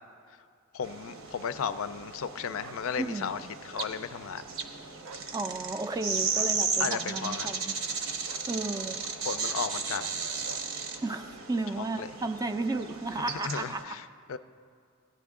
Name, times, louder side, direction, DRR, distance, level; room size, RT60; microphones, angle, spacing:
voice 1, 0.7-4.4 6.8-7.6 9.3-10.2 11.8-12.1 13.3-14.4, left 7 dB, 65° left, 12 dB, 0.4 m, -35 dB
sound 1, 0.8-13.8, right 5 dB, 65° right, 0.8 m, -35 dB
sound 2, 2.6-2.8 3.7-4.0 5.0-5.3 6.3-6.6 7.4-7.6 8.3-8.5 9.4-9.7 9.9-10.2 10.4-10.7, right 4 dB, 85° right, 0.4 m, -47 dB
voice 2, 3.0-3.3 5.3-7.8 8.5-9.0 11.0-14.0, right 2 dB, 15° right, 9 dB, 0.3 m, -33 dB
16.5 x 10.0 x 3.6 m, 2.2 s
head